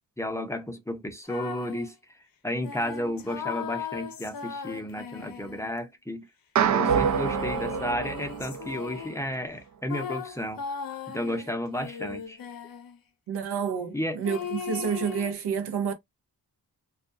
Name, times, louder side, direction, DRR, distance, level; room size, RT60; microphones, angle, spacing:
voice 1, 0.2-2.2 2.4-6.3 6.6-10.6 11.1-12.4 13.9-14.2, left 1 dB, 5° left, 0.6 m, -32 dB
sound 1, 1.3-1.9 2.6-5.9 6.7-9.3 9.9-13.0 14.2-15.3, left 7 dB, 60° left, 0.6 m, -37 dB
sound 2, 6.6-9.0, right 8 dB, 50° right, 0.5 m, -26 dB
voice 2, 13.3-15.9, right 7 dB, 85° right, 0.7 m, -29 dB
2.4 x 2.1 x 2.6 m
cardioid pair, 55°, 39 cm